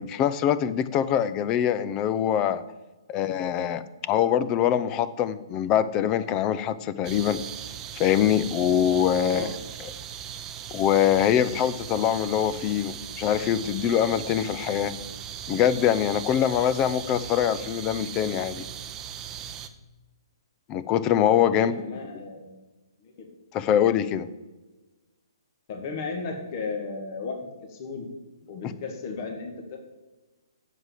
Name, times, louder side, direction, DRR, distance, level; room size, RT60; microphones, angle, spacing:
voice 1, 0.0-2.6 3.1-7.4 8.0-9.5 10.7-14.9 15.5-18.7 20.7-21.7 23.5-24.3 28.6-28.7, left 10 dB, 20° left, 15 dB, 0.5 m, -24 dB
sound 1, 7.0-19.7, right 9 dB, 20° right, 0.7 m, -38 dB
voice 2, 9.2-9.5 21.6-22.5 23.0-23.3 25.7-27.4 27.7-28.1 28.5-29.8, left 4 dB, 40° left, 3 dB, 1.9 m, -35 dB
8.0 x 7.6 x 7.5 m, 1.1 s
hypercardioid pair, 150°, 3 cm